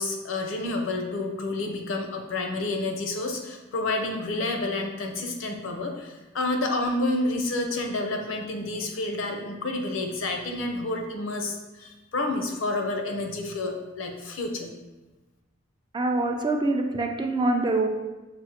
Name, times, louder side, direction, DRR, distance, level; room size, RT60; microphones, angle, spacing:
voice 1, 0.0-14.7, left 2 dB, 90° left, 3 dB, 0.6 m, -29 dB
voice 2, 15.9-17.9, right 2 dB, 25° right, 4 dB, 0.3 m, -25 dB
6.0 x 2.0 x 2.8 m, 1.1 s
head